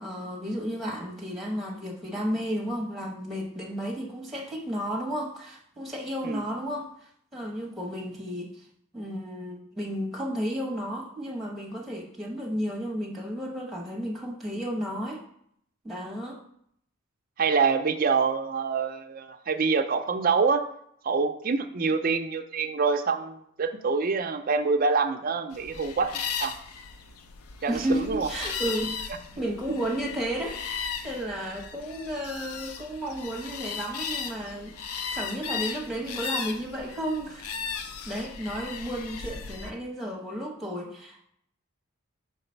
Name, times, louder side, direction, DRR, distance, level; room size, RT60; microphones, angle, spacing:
voice 1, 0.0-6.9 7.3-8.7 8.9-15.2 15.8-16.4 27.7-29.1 29.4-34.8 35.1-37.6 37.8-41.3, equal, ahead, -2 dB, 1.0 m, -33 dB
voice 2, 17.4-20.6 21.0-26.5 27.6-28.3, right 5 dB, 40° right, 7 dB, 0.4 m, -26 dB
sound 1, 25.5-39.7, left 6 dB, 85° left, 0.5 m, -36 dB
5.9 x 3.9 x 4.4 m, 0.70 s
head